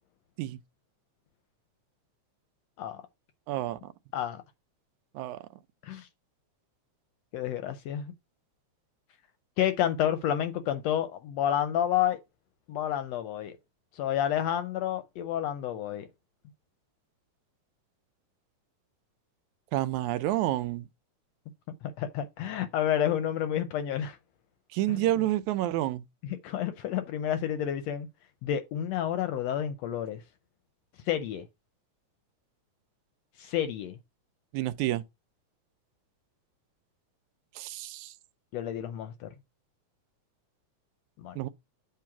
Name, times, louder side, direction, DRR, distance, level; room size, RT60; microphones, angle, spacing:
voice 1, 3.5-3.8 5.2-5.4 19.7-20.8 24.7-26.0 34.5-35.0 37.6-38.1 41.4-41.5, right 14 dB, 80° right, 1.9 m, -29 dB
voice 2, 7.3-8.1 9.6-12.2 12.7-13.5 13.9-16.1 21.8-24.2 24.9-25.1 26.2-28.1 28.4-30.2 31.1-31.4 33.4-34.0 38.5-39.3 41.2-41.4, left 10 dB, 75° left, 1.6 m, -30 dB
8.5 x 3.2 x 5.7 m
omnidirectional pair, 3.5 m